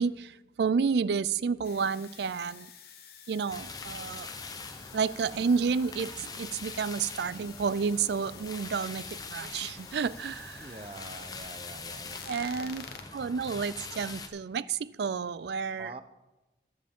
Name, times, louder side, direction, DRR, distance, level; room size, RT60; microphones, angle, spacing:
voice 1, 0.0-2.7 3.3-4.3 4.9-10.8 12.3-12.9 13.1-15.9, right 5 dB, 65° right, 18 dB, 0.4 m, -30 dB
sound 1, 1.6-13.0, left 7 dB, 55° left, 1.0 m, -50 dB
sound 2, 3.5-14.3, left 4 dB, 20° left, 0.7 m, -43 dB
voice 2, 10.6-12.2 15.8-16.0, right 2 dB, 30° right, 9 dB, 0.7 m, -44 dB
20.0 x 7.6 x 3.6 m, 1.1 s
head